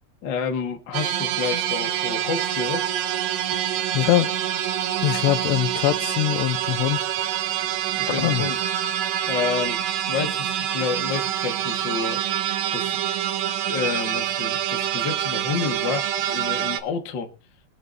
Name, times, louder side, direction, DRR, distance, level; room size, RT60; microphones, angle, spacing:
voice 1, 0.2-2.8 7.9-8.7 9.3-12.2 12.7-13.1 13.6-17.3, left 6 dB, 60° left, 1.1 m, -29 dB
sound 1, 0.9-16.8, right 11 dB, 80° right, 3.0 m, -26 dB
voice 2, 3.9-4.3 5.0-7.3 8.2-8.5, left 15 dB, 85° left, 2.9 m, -23 dB
23.5 x 9.5 x 2.6 m
omnidirectional pair, 4.9 m